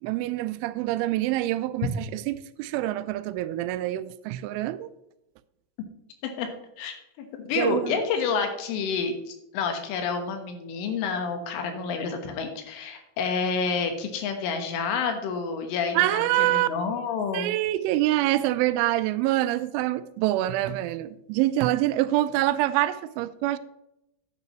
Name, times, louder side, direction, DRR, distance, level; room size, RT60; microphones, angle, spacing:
voice 1, 0.0-4.9 7.6-8.0 16.0-16.7 17.3-23.6, right 15 dB, 90° right, 3.0 m, -25 dB
voice 2, 6.8-17.5, left 5 dB, 85° left, 3.8 m, -29 dB
10.0 x 9.7 x 3.1 m
omnidirectional pair, 5.5 m